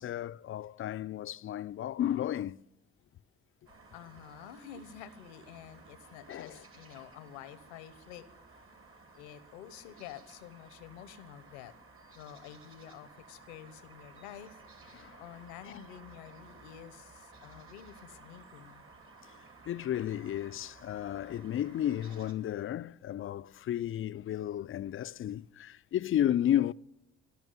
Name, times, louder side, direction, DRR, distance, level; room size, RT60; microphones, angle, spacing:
voice 1, 0.0-2.6 6.3-6.6 14.9-15.2 15.7-15.8 19.7-26.7, left 11 dB, 40° left, 0.4 m, -33 dB
sound 1, 3.7-22.3, right 3 dB, 40° right, 2.2 m, -56 dB
voice 2, 3.9-8.2 9.1-11.7 12.1-14.6 15.2-18.8, left 10 dB, 90° left, 1.0 m, -49 dB
17.5 x 6.0 x 9.3 m
hypercardioid pair, 55°, 32 cm